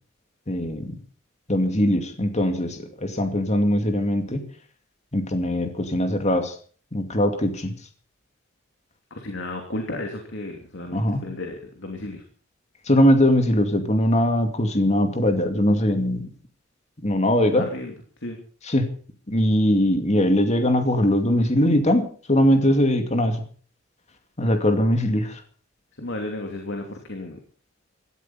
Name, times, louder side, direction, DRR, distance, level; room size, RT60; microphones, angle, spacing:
voice 1, 0.5-0.9 1.5-4.4 5.1-6.5 6.9-7.7 10.9-11.2 12.9-16.2 17.0-17.6 18.7-18.8 19.3-22.0 22.3-23.4 24.4-25.3, left 1 dB, 35° left, 6 dB, 2.4 m, -21 dB
voice 2, 9.1-12.2 17.4-18.4 25.9-27.4, left 1 dB, 60° left, 3 dB, 3.0 m, -34 dB
16.5 x 14.0 x 5.7 m, 0.44 s
head